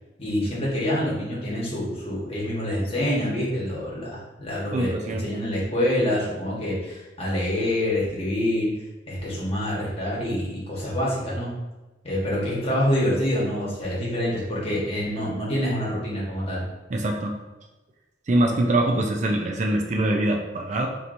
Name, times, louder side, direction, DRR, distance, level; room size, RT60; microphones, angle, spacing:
voice 1, 0.2-8.7 9.1-11.5 12.0-16.6, left 1 dB, 35° left, -6 dB, 1.3 m, -26 dB
voice 2, 4.7-5.3 16.9-17.4 18.3-20.9, right 1 dB, 40° right, 2 dB, 0.4 m, -23 dB
4.6 x 2.9 x 2.6 m, 1.1 s
head